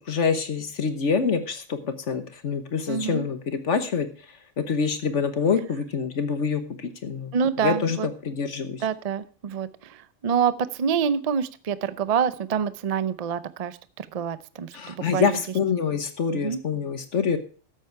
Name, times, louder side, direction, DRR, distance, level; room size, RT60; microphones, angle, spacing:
voice 1, 0.1-4.1 4.6-8.8 14.7-17.4, left 6 dB, 65° left, 9 dB, 1.4 m, -26 dB
voice 2, 2.9-3.3 7.3-8.1 8.8-15.4 16.3-16.6, right 7 dB, 45° right, 14 dB, 0.5 m, -27 dB
13.0 x 8.3 x 4.6 m, 0.39 s
omnidirectional pair, 1.4 m